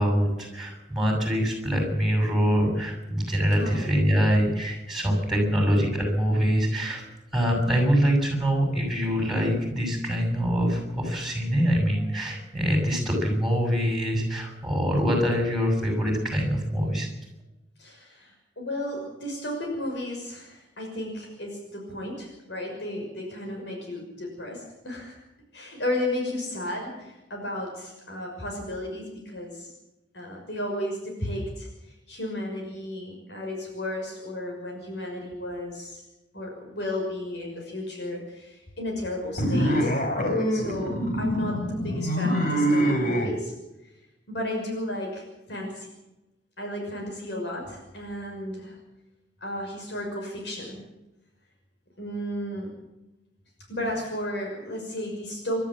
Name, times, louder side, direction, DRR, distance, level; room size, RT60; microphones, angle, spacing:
voice 1, 0.0-7.0 7.3-17.1, equal, ahead, 1 dB, 6.8 m, -24 dB
voice 2, 3.5-4.0 5.4-5.6 17.8-25.2 25.5-29.7 30.1-36.0 36.3-39.9 40.5-43.5 43.8-43.9 44.3-45.9 46.6-48.8 49.4-50.8 52.0-52.7 53.7-55.6, left 1 dB, 70° left, 0 dB, 6.2 m, -34 dB
sound 1, 39.4-43.3, equal, 45° left, 4.1 m, -24 dB
28.0 x 13.0 x 7.6 m, 0.98 s
head